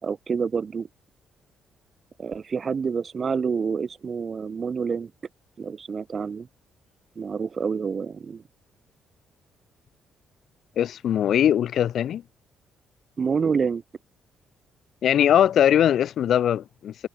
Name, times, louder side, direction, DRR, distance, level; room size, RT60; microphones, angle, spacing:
voice 1, 0.0-0.9 2.2-5.1 5.6-6.5 7.2-8.4 13.2-13.8, right 5 dB, 40° right, 3.0 m, -27 dB
voice 2, 10.8-12.2 15.0-17.1, left 10 dB, 65° left, 4.1 m, -21 dB
cardioid pair, 90°, 0 cm